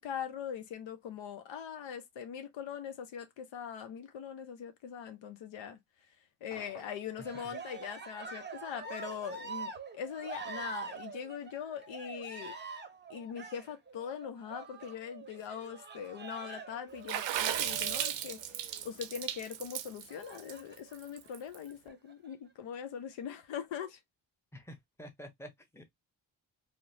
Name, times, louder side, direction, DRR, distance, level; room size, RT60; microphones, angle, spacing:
voice 1, 0.0-5.8 6.4-12.5 13.1-24.0, left 8 dB, 80° left, 0.7 m, -42 dB
sound 1, 6.5-7.1, left 4 dB, 60° left, 1.0 m, -52 dB
Cheering, 7.1-18.8 20.1-21.0 21.7-22.3, right 4 dB, 25° right, 0.6 m, -45 dB
Water / Splash splatter, 17.1-21.6, right 11 dB, 75° right, 0.5 m, -35 dB
voice 2, 24.5-25.9, equal, 5° left, 0.8 m, -49 dB
2.8 x 2.1 x 2.6 m
cardioid pair, 60°, 45 cm